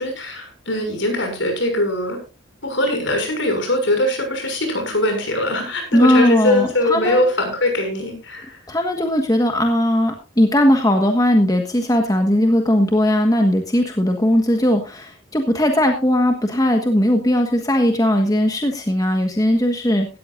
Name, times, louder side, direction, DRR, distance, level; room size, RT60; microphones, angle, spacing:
voice 1, 0.0-2.2 2.6-8.6, left 1 dB, 65° left, 4 dB, 6.6 m, -21 dB
voice 2, 5.9-7.2 8.7-20.1, left 1 dB, 20° left, 4 dB, 1.5 m, -18 dB
17.5 x 13.5 x 2.6 m, 0.30 s
head